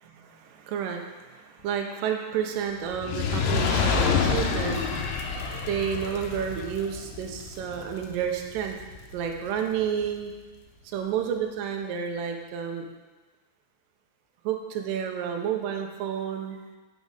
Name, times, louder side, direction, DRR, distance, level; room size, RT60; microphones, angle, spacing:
voice 1, 0.0-4.9 5.7-8.8 9.1-10.3 10.9-12.9 14.4-16.8, right 8 dB, 75° right, 3 dB, 2.1 m, -30 dB
Fire, 2.9-9.3 10.0-10.1, left 5 dB, 75° left, 2.0 m, -28 dB
8.4 x 6.3 x 5.2 m, 1.2 s
omnidirectional pair, 4.7 m